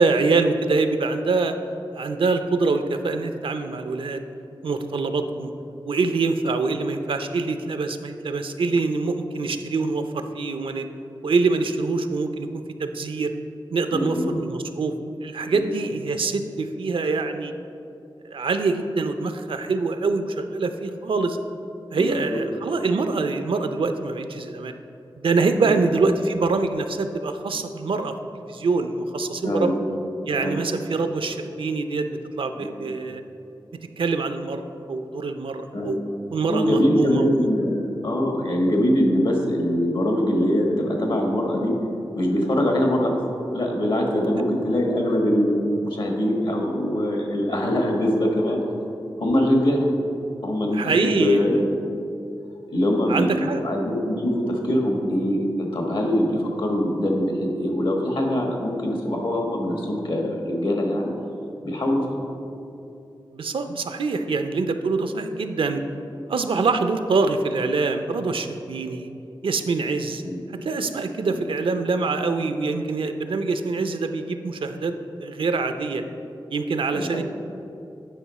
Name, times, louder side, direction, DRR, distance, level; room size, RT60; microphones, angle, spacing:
voice 1, 0.0-1.5 1.9-4.2 4.6-5.5 5.8-10.9 11.2-13.3 13.7-14.9 15.2-17.5 18.2-21.4 21.9-24.7 25.2-28.1 28.5-29.8 30.3-33.2 34.0-36.0 36.3-37.5 50.7-51.5 53.1-53.6 63.3-65.8 66.3-69.1 69.4-70.2 70.6-74.9 75.2-76.0 76.5-77.2, right 3 dB, 80° right, 8 dB, 0.5 m, -24 dB
voice 2, 13.9-14.3 15.5-15.7 21.9-22.4 25.5-25.7 29.4-29.8 30.4-30.6 32.6-32.7 35.7-36.0 36.5-41.7 42.1-43.2 43.5-48.6 49.2-49.8 50.4-52.1 52.7-61.1 61.6-62.2 70.2-70.4 71.3-71.4 76.9-77.2, equal, 70° left, 0 dB, 1.4 m, -23 dB
9.3 x 5.5 x 4.1 m, 2.7 s
wide cardioid pair, 75°, 9 cm